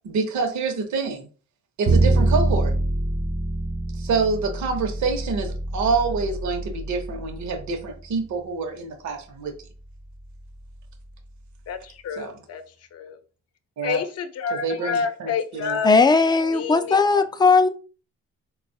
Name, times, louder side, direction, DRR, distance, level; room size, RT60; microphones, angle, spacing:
voice 1, 0.0-1.3 1.8-2.7 4.0-9.5 12.2-12.3 13.8-14.0 14.6-15.8, right 4 dB, 70° right, 0.9 m, -26 dB
Bowed string instrument, 1.8-8.0, right 2 dB, 30° right, 0.5 m, -25 dB
voice 2, 11.7-12.6 12.9-13.2 13.8-15.9 16.5-17.0, left 6 dB, 55° left, 0.6 m, -29 dB
voice 3, 15.8-17.7, left 4 dB, 15° left, 0.3 m, -17 dB
3.8 x 2.3 x 2.7 m
cardioid pair, 90°, 30 cm